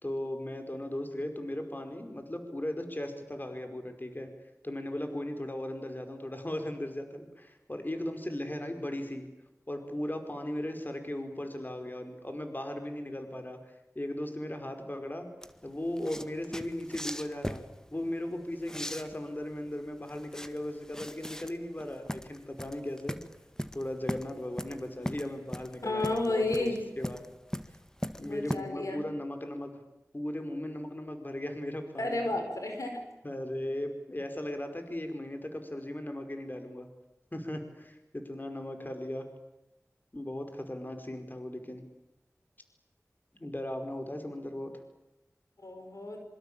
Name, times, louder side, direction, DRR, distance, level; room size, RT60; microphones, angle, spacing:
voice 1, 0.0-4.3 4.6-9.3 9.7-13.6 14.0-15.3 15.6-17.6 17.9-23.2 23.7-26.7 27.0-27.2 28.2-29.7 30.1-32.3 33.2-36.9 37.3-39.3 40.1-41.8 43.3-44.7, left 1 dB, 35° left, 6 dB, 5.1 m, -37 dB
sound 1, 15.4-28.6, equal, 10° left, 1.9 m, -39 dB
voice 2, 25.8-26.8 28.2-29.1 32.0-33.0 45.6-46.2, left 2 dB, 80° left, 4 dB, 5.1 m, -32 dB
26.5 x 25.0 x 8.8 m, 0.90 s
wide cardioid pair, 45°, 5 cm